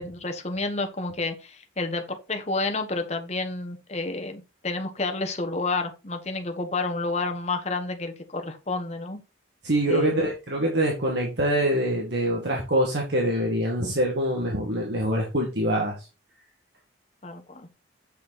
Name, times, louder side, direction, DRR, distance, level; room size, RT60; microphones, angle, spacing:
voice 1, 0.0-9.2 9.9-10.2 17.2-17.7, left 3 dB, 35° left, 5 dB, 1.2 m, -30 dB
voice 2, 9.6-16.1, right 1 dB, 60° right, -1 dB, 1.9 m, -25 dB
8.1 x 6.3 x 4.1 m, 0.29 s
head